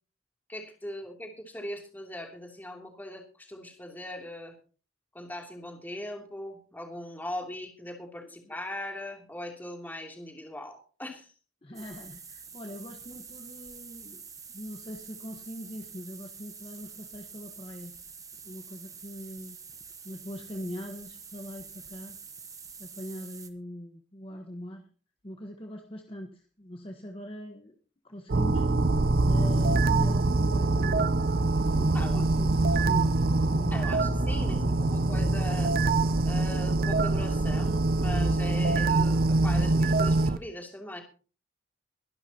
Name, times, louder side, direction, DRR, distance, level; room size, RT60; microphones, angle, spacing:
voice 1, 0.5-4.6 5.1-11.3 31.9-32.3 33.7-35.7 36.2-41.0, left 1 dB, 10° left, 2 dB, 2.9 m, -40 dB
voice 2, 8.2-8.5 11.6-14.2 14.5-17.9 18.4-19.6 20.0-22.2 22.8-24.9 25.2-27.7 28.0-28.7 28.9-31.2 31.8-33.9 34.3-34.7, equal, 30° left, 3 dB, 1.4 m, -42 dB
sound 1, 11.7-23.5, right 6 dB, 20° right, 1.2 m, -47 dB
sound 2, 28.3-40.4, right 2 dB, 50° right, 0.6 m, -24 dB
sound 3, 31.2-38.9, left 1 dB, 55° left, 1.5 m, -39 dB
23.0 x 12.0 x 2.9 m, 0.38 s
head